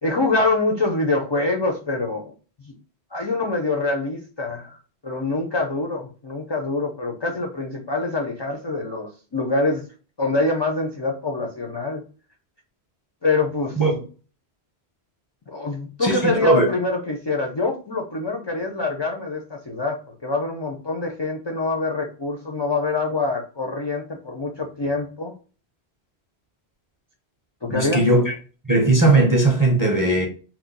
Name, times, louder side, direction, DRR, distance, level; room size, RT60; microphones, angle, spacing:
voice 1, 0.0-2.3 2.7-2.8 3.1-4.8 5.0-9.8 10.2-12.0 13.2-13.8 15.5-25.3 27.6-28.0, left 3 dB, 45° left, 0.3 m, -25 dB
voice 2, 27.7-28.3 28.6-30.3, right 2 dB, 25° right, 0.5 m, -18 dB
3.0 x 2.1 x 3.8 m
omnidirectional pair, 1.1 m